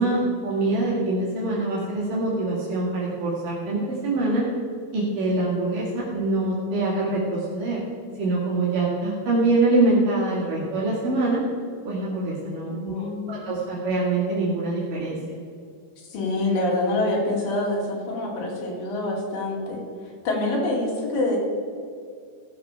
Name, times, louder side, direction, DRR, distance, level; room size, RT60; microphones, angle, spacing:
voice 1, 0.0-4.4 4.9-7.8 8.2-11.4 11.9-15.4, right 2 dB, 70° right, -6 dB, 3.8 m, -24 dB
voice 2, 12.6-13.5 16.1-19.8 20.2-21.4, left 2 dB, 80° left, -2 dB, 4.2 m, -26 dB
17.0 x 6.7 x 5.6 m, 2.3 s
omnidirectional pair, 3.9 m